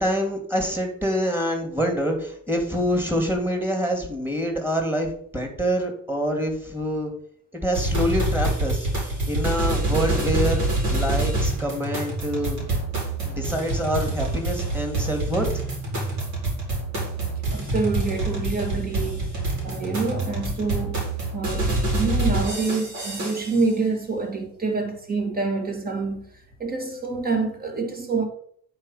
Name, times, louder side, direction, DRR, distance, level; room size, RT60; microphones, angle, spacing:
voice 1, 0.0-7.1 7.5-8.9 9.3-10.6 10.9-12.6 13.2-15.5, equal, 5° right, 2.7 m, -26 dB
sound 1, 7.7-23.7, right 2 dB, 65° right, 4.2 m, -26 dB
voice 2, 17.5-19.3 19.6-21.0 21.3-26.3 26.6-28.3, right 4 dB, 30° right, 2.4 m, -27 dB
8.8 x 4.7 x 5.7 m
cardioid pair, 90°, 30 cm